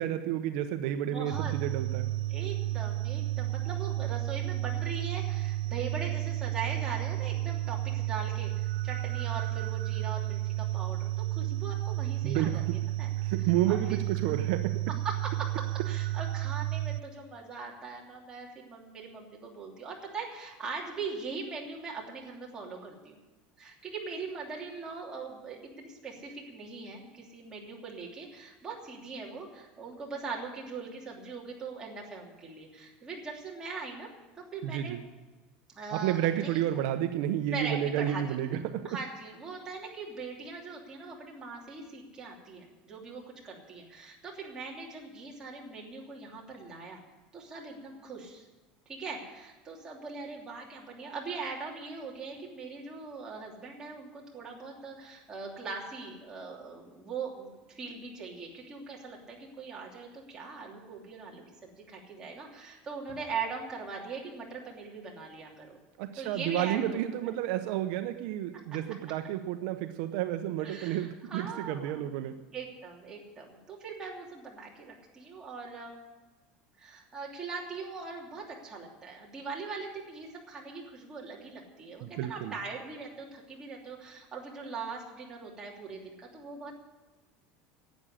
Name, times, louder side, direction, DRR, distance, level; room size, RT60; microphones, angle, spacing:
voice 1, 0.0-2.1 12.2-12.9 13.2-14.9 34.6-35.0 35.9-39.0 66.0-72.4 82.0-82.5, right 11 dB, 65° right, 8 dB, 0.7 m, -31 dB
voice 2, 0.9-1.5 2.3-12.6 13.0-13.1 13.7-14.0 14.2-14.4 15.0-23.2 23.6-34.1 34.3-35.0 35.7-36.6 37.5-38.6 38.8-47.0 47.3-48.4 48.9-65.8 66.2-67.0 67.2-67.3 70.6-72.2 72.5-75.9 76.8-86.7, right 4 dB, 20° right, -3 dB, 3.0 m, -41 dB
sound 1, 1.3-17.0, right 16 dB, 85° right, 0.3 m, -32 dB
11.5 x 8.9 x 9.9 m, 1.2 s
cardioid pair, 160°, 4 cm